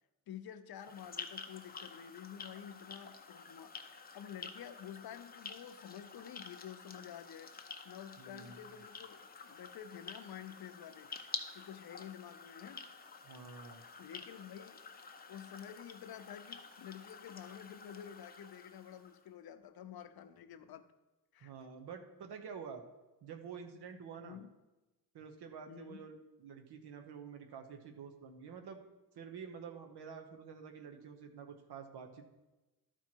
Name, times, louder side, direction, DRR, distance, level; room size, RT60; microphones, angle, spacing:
voice 1, 0.3-3.8 4.1-7.5 7.8-11.1 11.5-12.9 14.0-14.8 15.3-20.8 21.3-21.5 24.2-24.5 25.7-26.0, left 9 dB, 70° left, 10 dB, 0.6 m, -50 dB
sound 1, 0.7-19.2, left 5 dB, 25° left, 0.6 m, -50 dB
voice 2, 8.2-8.8 13.2-13.8 21.4-22.8 23.2-24.4 25.1-28.8 29.1-32.3, right 6 dB, 75° right, 5 dB, 1.0 m, -49 dB
12.5 x 4.5 x 4.5 m, 1.1 s
wide cardioid pair, 150°, 39 cm